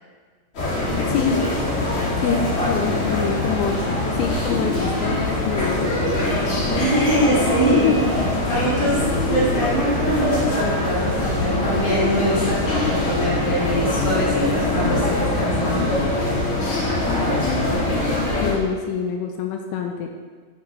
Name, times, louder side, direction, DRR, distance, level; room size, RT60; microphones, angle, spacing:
sound 1, 0.5-18.5, left 2 dB, 40° left, 3.4 m, -22 dB
voice 1, 1.1-1.4 2.2-3.9 4.1-6.4 7.7-8.0 8.5-8.7 15.8-16.2 18.4-20.1, left 6 dB, 85° left, 3 dB, 3.1 m, -26 dB
voice 2, 6.7-7.9 8.5-15.9, right 1 dB, 20° left, -6 dB, 0.9 m, -23 dB
13.5 x 7.1 x 3.3 m, 1.5 s
omnidirectional pair, 5.9 m